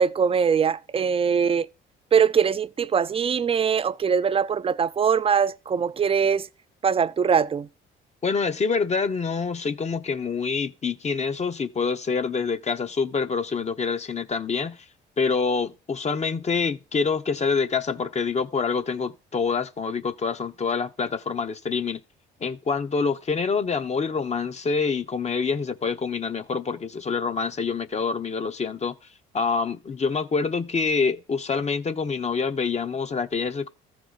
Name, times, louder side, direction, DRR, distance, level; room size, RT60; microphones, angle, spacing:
voice 1, 0.0-1.7 2.1-6.5 6.8-7.7, right 6 dB, 30° right, 0.5 m, -22 dB
voice 2, 8.2-14.9 15.2-22.0 22.4-29.0 29.3-33.7, left 5 dB, 35° left, 0.9 m, -26 dB
14.0 x 4.8 x 4.0 m
supercardioid pair, 75°, 20 cm